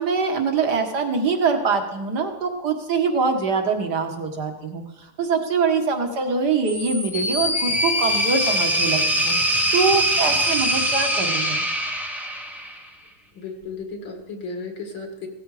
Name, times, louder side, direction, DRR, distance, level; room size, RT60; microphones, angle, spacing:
voice 1, 0.0-11.6, right 5 dB, 50° right, 5 dB, 2.1 m, -24 dB
sound 1, 6.7-12.9, equal, ahead, 1.0 m, -23 dB
voice 2, 13.3-15.3, left 4 dB, 60° left, 4 dB, 2.7 m, -34 dB
17.0 x 13.5 x 5.0 m, 0.95 s
omnidirectional pair, 2.4 m